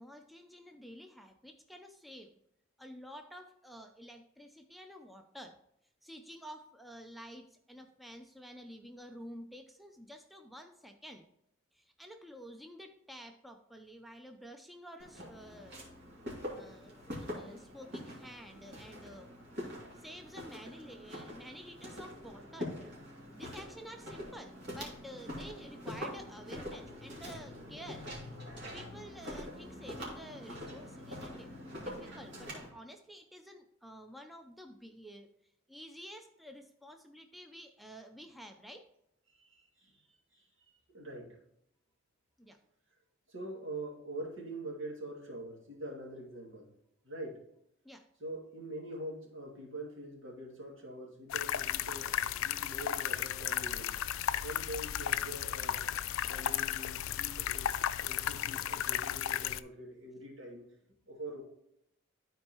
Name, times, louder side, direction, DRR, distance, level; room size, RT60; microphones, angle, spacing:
voice 1, 0.0-2.3 2.8-5.6 6.0-11.2 11.7-15.8 16.5-19.3 19.9-22.7 23.3-28.1 28.7-38.9 42.4-42.6 47.8-48.1, equal, ahead, 4 dB, 0.5 m, -50 dB
Walk footsteps, 15.0-32.7, left 1 dB, 55° right, 2.5 m, -44 dB
voice 2, 39.3-41.4 43.3-46.7 47.0-47.4 48.2-54.0 54.4-55.9 56.3-57.7 58.0-60.6 61.1-61.4, right 1 dB, 80° right, -2 dB, 2.2 m, -44 dB
sound 1, 51.3-59.6, left 10 dB, 85° left, 0.4 m, -34 dB
12.5 x 4.5 x 2.9 m, 0.77 s
head